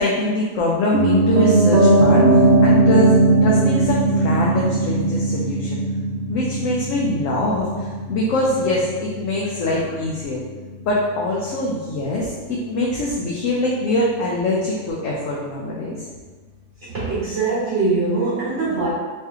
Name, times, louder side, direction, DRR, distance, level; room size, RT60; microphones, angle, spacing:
voice 1, 0.0-3.2 3.4-5.8 6.3-10.4 10.9-16.1, left 1 dB, 65° left, -4 dB, 0.8 m, -23 dB
Piano, 0.9-10.9 11.2-11.3, right 2 dB, 65° right, 1.0 m, -19 dB
voice 2, 16.8-18.9, right 3 dB, 50° right, -9 dB, 1.3 m, -22 dB
3.2 x 3.0 x 3.5 m, 1.4 s
omnidirectional pair, 1.7 m